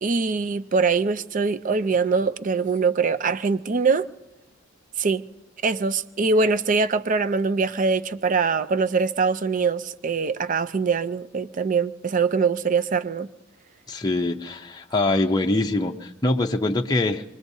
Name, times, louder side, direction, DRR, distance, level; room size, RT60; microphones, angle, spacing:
voice 1, 0.0-4.1 5.0-5.2 5.6-13.3, right 4 dB, 40° right, 0.5 m, -23 dB
voice 2, 13.9-17.2, left 2 dB, 20° left, 0.6 m, -23 dB
25.5 x 21.0 x 2.7 m
head